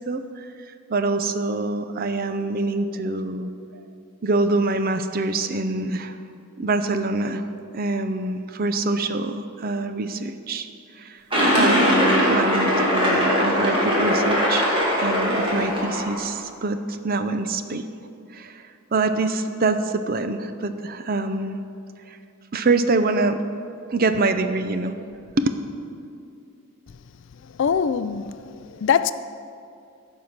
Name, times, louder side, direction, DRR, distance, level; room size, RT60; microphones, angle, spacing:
voice 1, 0.1-0.5 0.9-3.5 4.2-6.2 6.6-7.4 7.7-10.7 11.0-11.2 11.5-14.7 15.0-17.8 18.3-21.6 22.1-22.2 22.5-23.4 23.9-24.9 25.4-25.5, right 3 dB, 45° right, 0.5 m, -25 dB
sound 1, 11.3-16.3, equal, 25° right, 2.1 m, -20 dB
voice 2, 27.6-29.1, left 7 dB, 60° left, 0.3 m, -23 dB
14.5 x 5.6 x 6.0 m
head